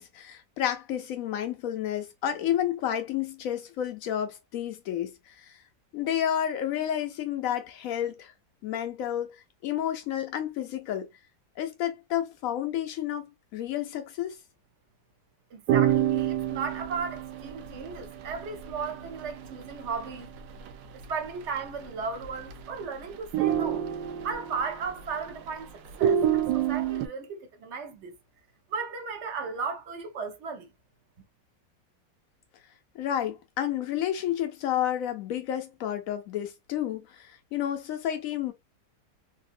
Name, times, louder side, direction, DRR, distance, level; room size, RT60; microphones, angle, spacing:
voice 1, 0.0-5.6 5.9-8.3 8.6-11.1 11.6-14.4 32.9-38.5, left 10 dB, 90° left, 0.7 m, -31 dB
voice 2, 15.5-20.3 21.1-23.9 24.2-28.1 28.7-30.7, right 5 dB, 60° right, 0.7 m, -35 dB
sound 1, 15.7-20.7 21.0-21.1 21.4-21.8 22.2-22.8 23.1-25.5 25.9-27.1, right 10 dB, 80° right, 1.2 m, -28 dB
3.5 x 2.6 x 2.5 m
omnidirectional pair, 2.0 m